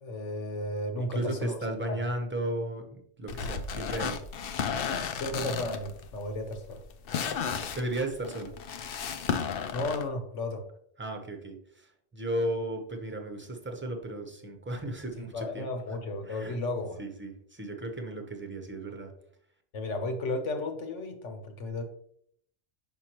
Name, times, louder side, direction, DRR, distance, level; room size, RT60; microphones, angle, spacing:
voice 1, 0.0-1.6 1.9-2.0 5.1-6.8 9.7-10.6 15.2-17.0 19.7-21.8, left 2 dB, 75° left, 5 dB, 1.3 m, -34 dB
voice 2, 1.0-4.2 7.7-8.5 11.0-15.7 16.3-16.6 17.0-19.1, right 1 dB, 10° right, 3 dB, 0.8 m, -35 dB
sound 1, 3.3-10.0, left 6 dB, 60° left, 0.7 m, -34 dB
5.9 x 5.6 x 3.0 m, 0.65 s
omnidirectional pair, 1.2 m